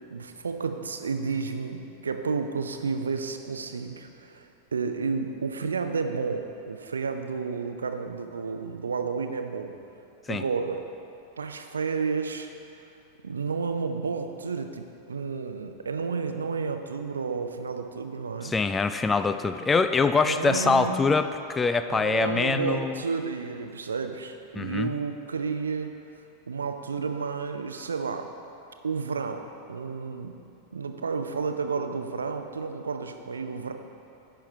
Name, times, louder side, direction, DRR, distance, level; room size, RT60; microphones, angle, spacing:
voice 1, 0.1-9.7 10.3-10.8 11.4-12.5 13.2-18.5 20.2-21.0 21.8-25.9 26.5-28.3 28.8-30.3 30.7-33.7, right 5 dB, 70° right, 7 dB, 0.5 m, -31 dB
voice 2, 18.4-23.0 24.6-24.9, left 4 dB, 15° left, 9 dB, 0.3 m, -24 dB
10.5 x 5.8 x 4.5 m, 2.7 s
figure-of-eight pair, 90°, 0 cm